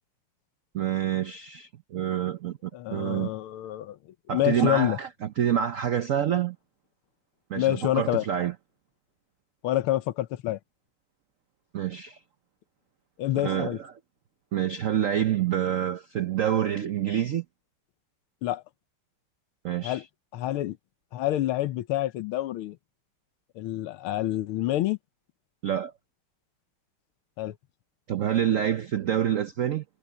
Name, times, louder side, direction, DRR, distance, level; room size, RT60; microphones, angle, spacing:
voice 1, 0.7-3.3 4.3-6.6 7.5-8.5 11.7-12.2 13.3-13.9 14.5-17.4 19.6-20.0 25.6-25.9 28.1-29.8, right 10 dB, 80° right, 0.7 m, -27 dB
voice 2, 2.7-4.0 4.3-5.0 7.5-8.2 9.6-10.6 13.2-13.8 18.4-18.6 19.8-20.0 20.3-20.8 21.1-22.8 23.6-25.0 27.4-27.5, left 14 dB, 80° left, 1.7 m, -27 dB
omnidirectional pair, 2.3 m